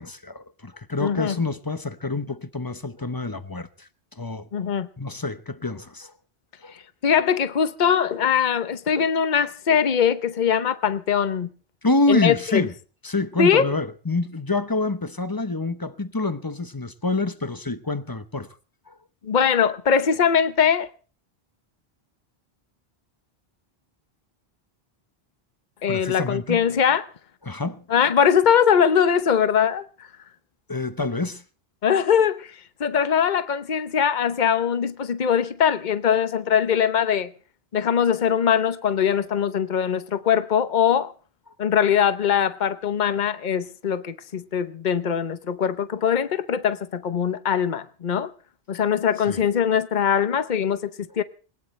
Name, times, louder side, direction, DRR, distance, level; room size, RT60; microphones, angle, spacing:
voice 1, 0.0-4.5 5.0-6.1 6.6-6.7 11.8-12.7 13.0-18.5 18.9-19.0 25.9-26.6 27.4-27.8 30.7-31.4 49.3-49.4, left 3 dB, 20° left, 0.9 m, -27 dB
voice 2, 1.0-1.4 4.5-4.9 7.0-11.5 12.1-12.6 13.4-13.7 19.2-20.9 25.8-27.0 27.9-29.8 31.8-37.3 37.7-41.1 41.6-48.3 48.7-51.2, left 8 dB, 50° left, 1.0 m, -21 dB
21.5 x 19.5 x 3.3 m
omnidirectional pair, 1.0 m